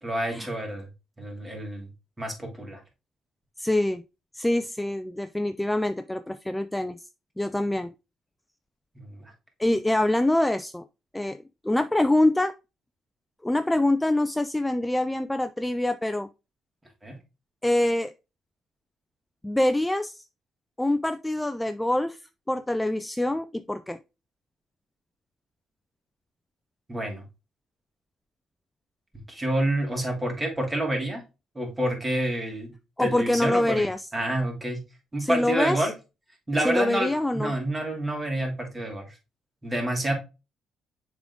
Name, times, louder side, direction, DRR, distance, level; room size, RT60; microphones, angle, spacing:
voice 1, 0.0-0.9 1.2-1.9 2.2-2.8 9.0-9.3 17.0-17.2 26.9-27.2 29.3-31.2 31.5-32.7 33.0-33.9 34.1-34.8 35.1-35.9 36.5-39.1 39.6-40.1, right 1 dB, 20° right, 2.5 m, -28 dB
voice 2, 3.6-4.0 4.3-7.0 7.4-7.9 9.6-10.8 11.1-12.5 13.4-16.3 17.6-18.1 19.4-20.2 20.8-22.2 22.5-24.0 33.0-34.1 35.2-35.9 36.6-37.5, left 1 dB, 10° left, 0.4 m, -25 dB
7.1 x 3.8 x 3.5 m
cardioid pair, 90°, 0 cm